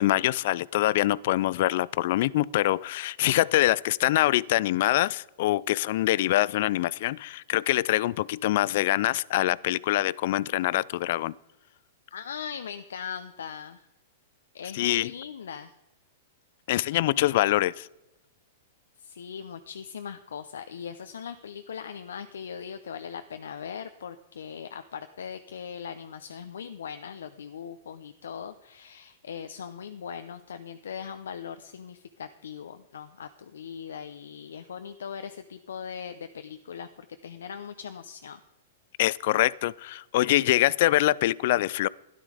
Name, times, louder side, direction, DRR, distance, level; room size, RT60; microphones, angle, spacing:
voice 1, 0.0-11.3 14.6-15.1 16.7-17.9 39.0-41.9, left 15 dB, 60° left, 0.4 m, -24 dB
voice 2, 12.1-13.9 14.5-15.7 19.0-38.4, left 7 dB, 85° left, 0.7 m, -40 dB
13.0 x 11.5 x 4.9 m
hypercardioid pair, 135°, 0 cm